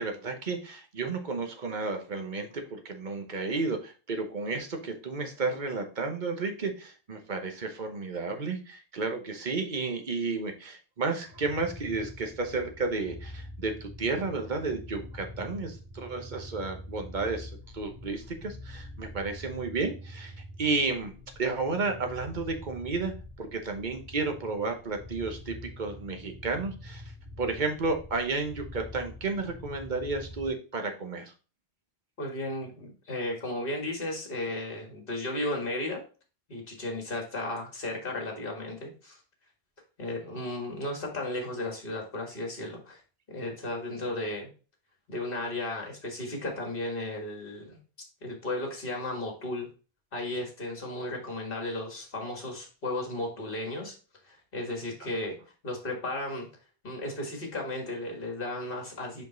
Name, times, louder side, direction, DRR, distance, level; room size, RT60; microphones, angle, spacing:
voice 1, 0.0-21.1 21.4-27.0 27.4-31.3, right 3 dB, 45° right, 5 dB, 1.2 m, -32 dB
sound 1, 11.2-30.5, left 1 dB, 65° right, 2.7 m, -45 dB
voice 2, 32.2-36.0 36.5-39.2 40.0-43.0 43.3-44.5 45.1-47.8 48.2-49.7 50.1-54.0 54.2-55.4 55.6-56.5 56.8-59.2, left 2 dB, 55° left, 2 dB, 2.1 m, -34 dB
5.2 x 5.2 x 3.9 m, 0.35 s
omnidirectional pair, 1.1 m